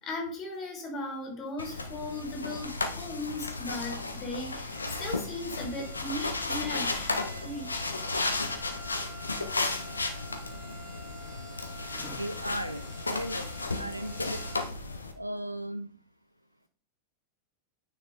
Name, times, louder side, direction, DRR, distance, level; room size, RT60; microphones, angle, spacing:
voice 1, 0.0-7.1 7.4-7.8 11.9-12.2, left 2 dB, 30° left, 2 dB, 3.4 m, -37 dB
sound 1, 1.6-15.1, left 3 dB, 80° left, 1.1 m, -34 dB
sound 2, 4.4-14.6, right 2 dB, 45° right, 4.2 m, -49 dB
voice 2, 12.1-13.5 13.8-14.4 15.2-15.9, equal, 90° right, 11 dB, 0.6 m, -36 dB
9.6 x 5.4 x 4.0 m, 0.43 s
figure-of-eight pair, 90°, 0 cm